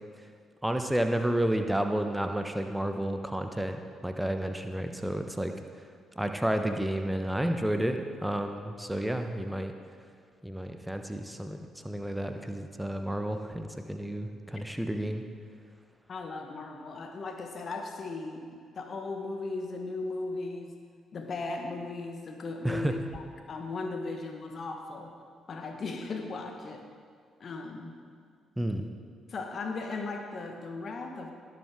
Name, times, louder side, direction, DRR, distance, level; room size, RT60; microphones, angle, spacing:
voice 1, 0.6-5.5 6.2-9.7 10.4-15.2 22.6-22.9 28.6-28.9, right 1 dB, 5° right, 6 dB, 1.0 m, -31 dB
voice 2, 16.1-18.5 18.7-20.7 21.1-23.2 23.5-25.1 25.5-26.8 27.4-28.0 29.3-31.3, left 3 dB, 45° left, 4 dB, 1.4 m, -37 dB
17.5 x 7.8 x 3.7 m, 2.1 s
figure-of-eight pair, 40°, 0 cm